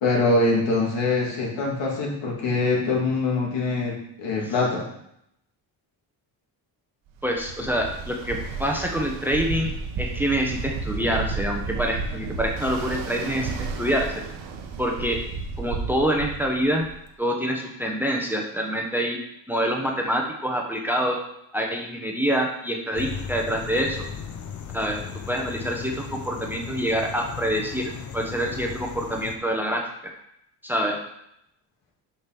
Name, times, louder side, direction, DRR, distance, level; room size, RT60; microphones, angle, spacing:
voice 1, 0.0-4.8, left 3 dB, 70° left, -2 dB, 2.7 m, -23 dB
voice 2, 7.2-9.7 10.0-14.2 14.8-15.3 15.6-16.9 17.2-21.2 21.5-24.0 24.7-29.9 30.6-31.0, equal, 5° right, 1 dB, 1.0 m, -26 dB
Ocean, 7.2-17.1, right 4 dB, 80° right, 1.3 m, -33 dB
sound 1, 22.9-29.4, left 7 dB, 40° left, 0.8 m, -37 dB
6.6 x 5.3 x 6.0 m, 0.77 s
cardioid pair, 120°, 46 cm